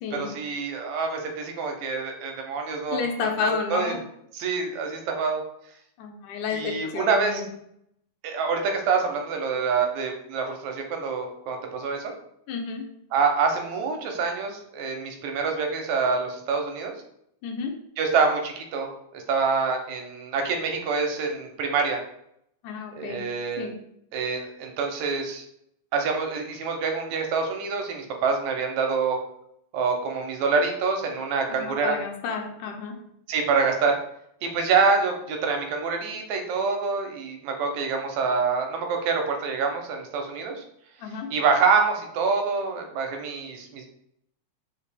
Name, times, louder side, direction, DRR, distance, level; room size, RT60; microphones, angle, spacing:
voice 1, 0.1-4.0 4.3-5.4 6.5-7.4 8.2-12.1 13.1-16.9 18.0-22.0 23.0-23.7 24.1-25.4 25.9-29.2 29.7-32.0 33.3-34.0 34.4-40.6 41.3-43.9, right 5 dB, 75° right, 3 dB, 1.9 m, -26 dB
voice 2, 2.9-4.0 6.0-7.5 12.5-12.9 17.4-17.7 22.6-23.2 23.6-23.7 31.5-33.0 41.0-41.3, left 5 dB, 85° left, 3 dB, 2.1 m, -31 dB
4.9 x 2.8 x 3.3 m, 0.74 s
omnidirectional pair, 3.3 m